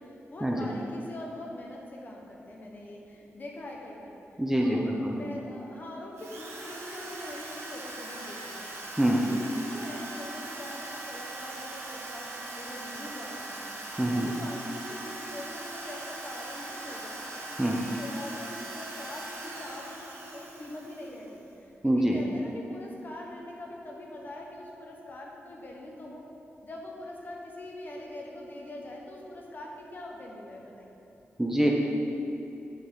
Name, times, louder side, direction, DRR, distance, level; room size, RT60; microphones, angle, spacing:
voice 1, 0.0-4.1 4.6-4.9 5.1-26.3 26.6-30.9, left 1 dB, 40° left, -1 dB, 1.1 m, -43 dB
voice 2, 4.4-5.2 9.0-9.2 14.0-14.3 17.6-17.8 21.8-22.2 31.4-31.7, right 1 dB, 10° right, -1 dB, 0.6 m, -25 dB
Drill, 6.1-21.3, right 2 dB, 85° right, 1.1 m, -40 dB
8.5 x 5.5 x 3.8 m, 2.9 s
wide cardioid pair, 125°, 5 cm